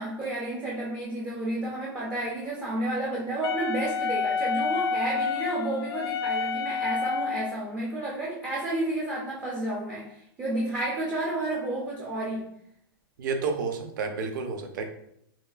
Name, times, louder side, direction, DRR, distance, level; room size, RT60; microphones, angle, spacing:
voice 1, 0.0-12.5, right 1 dB, 10° right, -5 dB, 0.4 m, -31 dB
Wind instrument woodwind instrument, 3.4-7.6, left 5 dB, 90° left, 0.5 m, -29 dB
voice 2, 13.2-14.9, right 4 dB, 55° right, 4 dB, 0.7 m, -30 dB
5.6 x 2.4 x 2.3 m, 0.73 s
supercardioid pair, 175°, 13 cm